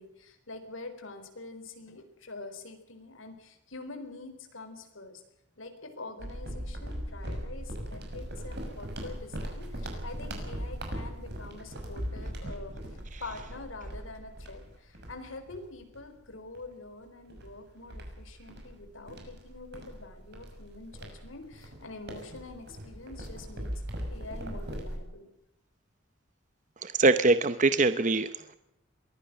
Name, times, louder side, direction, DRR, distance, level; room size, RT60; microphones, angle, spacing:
voice 1, 0.0-5.2 5.6-23.7 24.1-25.3, left 3 dB, 85° left, 7 dB, 4.3 m, -45 dB
sound 1, 6.2-16.1 16.5-16.7 17.3-25.0, equal, 55° right, 6.1 m, -40 dB
voice 2, 26.8-28.6, right 3 dB, 40° right, 11 dB, 0.8 m, -23 dB
23.0 x 16.0 x 7.7 m, 0.87 s
head